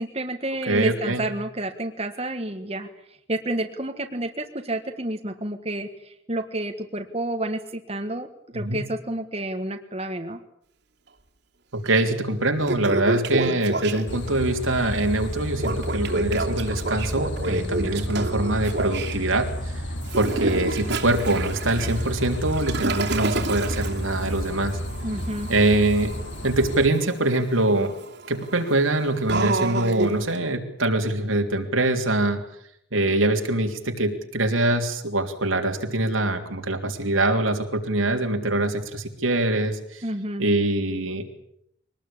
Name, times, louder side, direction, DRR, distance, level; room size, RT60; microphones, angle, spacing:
voice 1, 0.0-2.9 3.3-8.3 8.5-10.4 25.0-25.5 40.0-40.5, right 1 dB, 30° right, 6 dB, 1.6 m, -30 dB
voice 2, 0.7-1.2 8.5-8.8 11.7-19.7 20.1-24.8 25.5-26.1 26.4-27.9 28.3-32.4 32.9-40.0 40.4-41.2, right 2 dB, 85° right, 4 dB, 3.3 m, -24 dB
Toilet flush, 11.9-12.0 12.4-14.3 15.6-19.2 20.0-30.4, right 2 dB, 55° right, 2.8 m, -30 dB
sound 1, 14.1-26.9, equal, 65° left, 2.3 m, -32 dB
24.0 x 19.0 x 8.7 m, 0.73 s
head